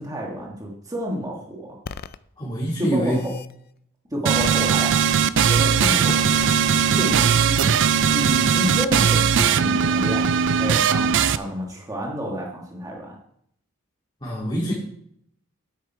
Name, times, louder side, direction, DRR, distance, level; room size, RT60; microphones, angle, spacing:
voice 1, 0.0-1.8 2.8-3.3 4.1-5.0 5.5-6.5 6.9-7.8 8.1-13.2, equal, 15° right, -2 dB, 1.5 m, -30 dB
sound 1, 1.8-2.2 2.9-3.5 4.4-5.1 5.5-5.7 6.1-6.6, left 5 dB, 45° left, 0.4 m, -35 dB
voice 2, 2.4-3.2 14.2-14.7, equal, 25° left, -6 dB, 2.3 m, -25 dB
sound 2, 4.3-11.4, right 7 dB, 60° right, 0.4 m, -19 dB
9.5 x 8.4 x 4.5 m, 0.70 s
head